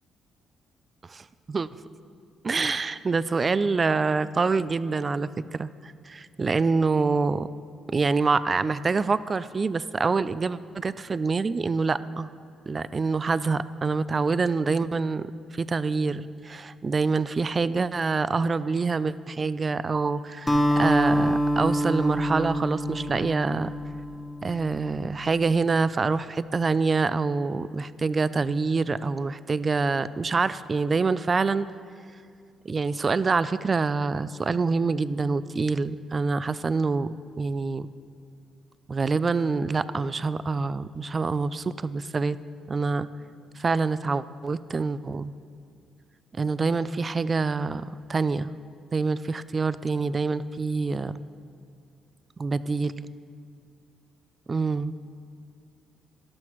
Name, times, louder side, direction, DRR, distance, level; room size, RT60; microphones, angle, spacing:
voice 1, 1.1-1.7 2.4-7.5 7.9-12.3 12.7-15.3 15.5-23.7 24.4-31.7 32.7-37.1 37.4-37.9 38.9-42.4 42.7-43.1 43.6-45.3 46.4-48.5 48.9-51.2 52.4-53.1 54.5-54.9, right 4 dB, 35° right, 16 dB, 0.3 m, -26 dB
Acoustic guitar, 20.5-24.9, equal, 15° left, 1.0 m, -26 dB
14.0 x 11.5 x 3.0 m, 2.3 s
cardioid pair, 90°, 0 cm